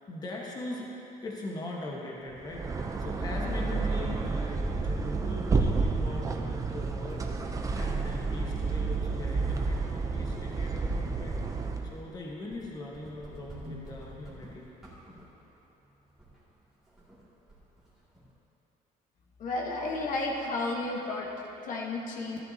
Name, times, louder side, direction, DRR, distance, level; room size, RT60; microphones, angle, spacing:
voice 1, 0.1-0.9 1.2-11.6 11.9-14.7, left 2 dB, 25° left, -3 dB, 1.3 m, -41 dB
sound 1, 2.4-12.0, right 3 dB, 20° right, 0.6 m, -30 dB
sound 2, 4.8-18.3, right 1 dB, 5° right, 2.3 m, -52 dB
voice 2, 19.4-21.3 21.6-22.4, left 2 dB, 55° left, -1 dB, 1.3 m, -32 dB
14.0 x 12.0 x 2.8 m, 2.9 s
cardioid pair, 150°, 16 cm